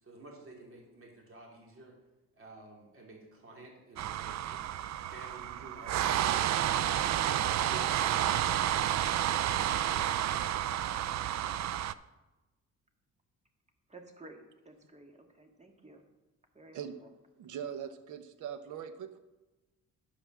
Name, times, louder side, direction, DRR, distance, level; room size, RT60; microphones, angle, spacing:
voice 1, 0.0-1.9 2.3-4.6 5.1-7.2 7.7-8.8, right 2 dB, 45° right, -1 dB, 3.1 m, -51 dB
sound 1, 4.0-11.9, right 11 dB, 65° right, 0.5 m, -30 dB
voice 2, 13.9-16.0 16.5-17.1, right 2 dB, 25° right, 4 dB, 1.8 m, -53 dB
voice 3, 17.4-19.2, right 8 dB, 85° right, 11 dB, 0.9 m, -41 dB
10.5 x 5.6 x 6.1 m, 1.1 s
cardioid pair, 80°, 30 cm